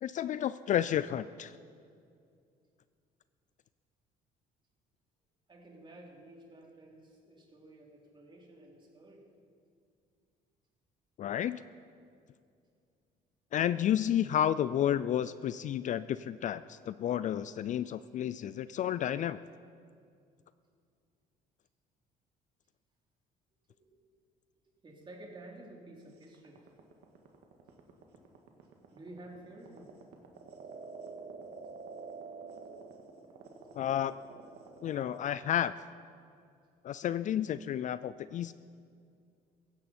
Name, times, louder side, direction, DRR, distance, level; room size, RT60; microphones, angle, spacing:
voice 1, 0.0-1.6 11.2-11.6 13.5-19.4 33.7-34.1 34.8-35.7 36.8-38.5, left 10 dB, 50° left, 15 dB, 0.4 m, -31 dB
voice 2, 5.5-9.2 23.7-23.9 24.8-26.6 28.9-29.9, right 1 dB, 30° right, -1 dB, 3.2 m, -52 dB
sound 1, 26.2-35.2, right 4 dB, 80° right, 1.9 m, -47 dB
16.5 x 15.0 x 4.3 m, 2.3 s
cardioid pair, 110°, 17 cm